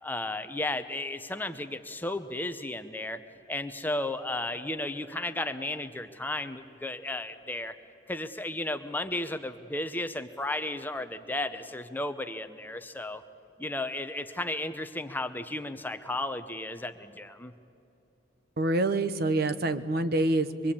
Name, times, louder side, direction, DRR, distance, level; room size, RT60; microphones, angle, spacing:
voice 1, 0.0-3.2 3.5-7.8 8.1-13.2 13.6-17.5, left 2 dB, 10° left, 9 dB, 0.7 m, -34 dB
voice 2, 18.6-20.7, right 2 dB, 50° right, 10 dB, 1.0 m, -26 dB
24.5 x 23.0 x 8.6 m, 2.8 s
head